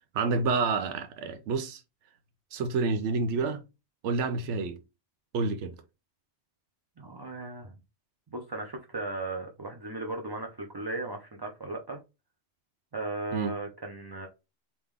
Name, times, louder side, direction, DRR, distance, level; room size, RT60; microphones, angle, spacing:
voice 1, 0.1-1.8 2.5-3.6 4.0-4.8 5.3-5.7 13.3-13.5, right 4 dB, 90° right, 0.9 m, -28 dB
voice 2, 7.0-7.7 8.3-12.0 12.9-14.3, right 2 dB, 30° right, 0.5 m, -36 dB
3.5 x 2.9 x 3.2 m
omnidirectional pair, 1.2 m